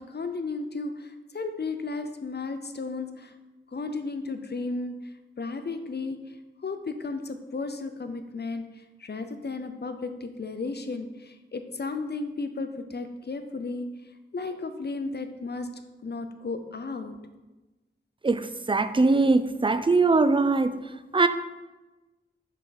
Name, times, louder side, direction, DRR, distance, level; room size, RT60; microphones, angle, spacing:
voice 1, 0.0-3.3 3.7-4.9 5.4-6.2 6.6-8.6 9.0-13.9 14.3-15.7 16.0-17.2, left 3 dB, 55° left, 8 dB, 0.6 m, -34 dB
voice 2, 18.2-20.7 21.1-21.3, right 3 dB, 25° right, 11 dB, 0.4 m, -21 dB
5.8 x 4.6 x 4.0 m, 1.1 s
wide cardioid pair, 50°, 21 cm